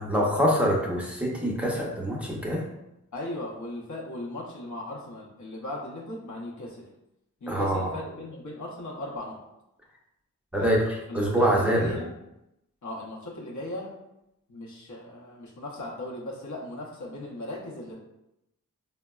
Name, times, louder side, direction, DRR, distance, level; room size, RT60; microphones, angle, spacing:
voice 1, 0.0-2.6 7.5-7.9 10.5-12.0, equal, 5° right, -3 dB, 0.7 m, -25 dB
voice 2, 3.1-6.8 7.4-9.4 10.5-10.7 11.1-12.1 12.8-13.9 14.5-18.0, left 1 dB, 60° left, -3 dB, 0.7 m, -37 dB
3.8 x 2.1 x 2.3 m, 0.88 s
cardioid pair, 55°, 33 cm